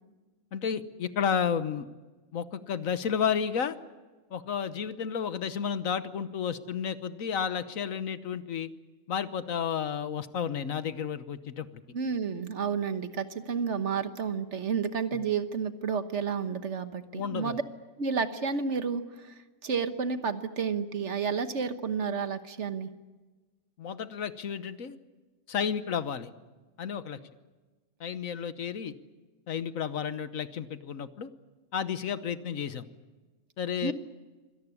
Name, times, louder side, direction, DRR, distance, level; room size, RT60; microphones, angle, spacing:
voice 1, 0.5-1.9 2.3-3.7 4.3-8.7 9.1-11.7 17.1-17.6 23.8-25.0 25.5-26.3 26.8-27.2 28.0-28.9 29.5-31.3 31.7-32.9 33.6-33.9, left 7 dB, 75° left, 12 dB, 1.4 m, -32 dB
voice 2, 11.9-17.6 18.0-19.3 19.6-22.9 33.8-33.9, right 6 dB, 60° right, 10 dB, 1.5 m, -31 dB
25.5 x 18.0 x 9.8 m, 1.3 s
omnidirectional pair, 1.4 m